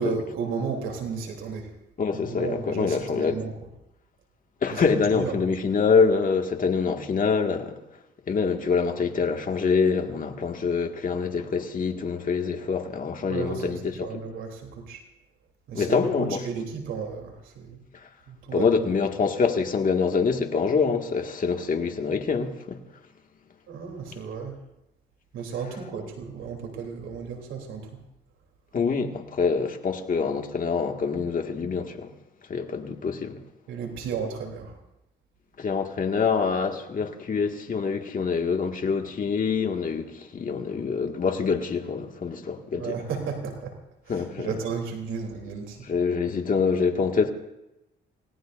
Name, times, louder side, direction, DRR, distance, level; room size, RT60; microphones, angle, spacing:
voice 1, 0.0-1.7 2.2-3.5 4.7-5.3 13.3-15.0 15.7-17.8 18.3-18.7 23.7-24.5 25.3-28.0 33.7-34.8 42.7-43.7 44.1-45.8, right 5 dB, 90° right, 3.3 m, -33 dB
voice 2, 2.0-3.4 4.6-7.7 8.3-14.1 15.7-16.4 18.5-22.8 28.7-32.1 32.5-33.4 35.6-43.0 44.1-44.6 45.8-47.3, left 5 dB, 45° left, 1.9 m, -25 dB
28.0 x 18.0 x 2.6 m
cardioid pair, 90°, 20 cm